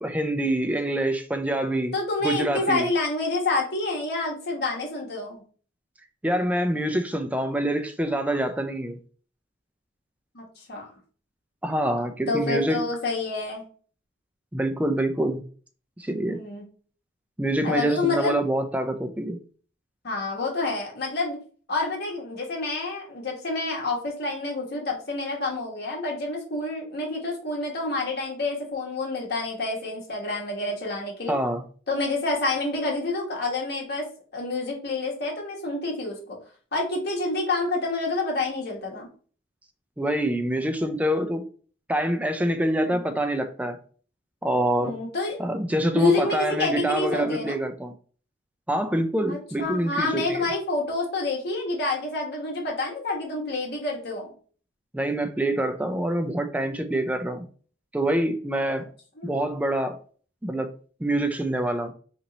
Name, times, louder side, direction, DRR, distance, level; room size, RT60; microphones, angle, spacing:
voice 1, 0.0-1.9 2.2-2.9 6.2-9.0 11.6-12.8 14.5-15.4 16.0-16.4 17.4-19.4 31.3-31.6 40.0-41.4 41.9-43.8 44.4-44.9 45.4-47.9 48.7-50.4 54.9-57.4 57.9-58.9 59.2-60.0 60.4-60.7 61.0-61.9, right 1 dB, 5° right, 0.3 m, -26 dB
voice 2, 1.9-5.4 10.3-10.9 12.3-13.6 16.3-16.6 17.6-18.4 20.0-21.4 21.7-31.3 31.9-34.0 34.3-36.4 36.7-39.1 42.8-43.0 44.8-45.4 45.9-47.5 49.3-54.3 59.2-59.4, left 3 dB, 55° left, 1.2 m, -28 dB
3.0 x 2.7 x 3.9 m
head